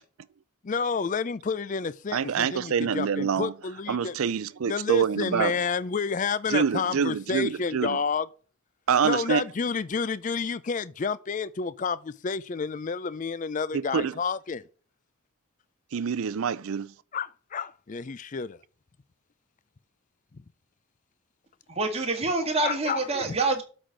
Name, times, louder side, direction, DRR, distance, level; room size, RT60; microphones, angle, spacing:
voice 1, 0.6-4.1 4.7-8.3 9.0-14.6 17.1-18.6 22.6-23.3, left 5 dB, 35° left, 0.4 m, -30 dB
voice 2, 2.1-3.5 3.9-5.5 6.5-8.0 8.9-9.4 13.7-14.1 15.9-16.9, right 7 dB, 70° right, 0.4 m, -26 dB
voice 3, 21.7-23.6, right 3 dB, 25° right, 1.7 m, -26 dB
7.9 x 4.2 x 6.2 m
head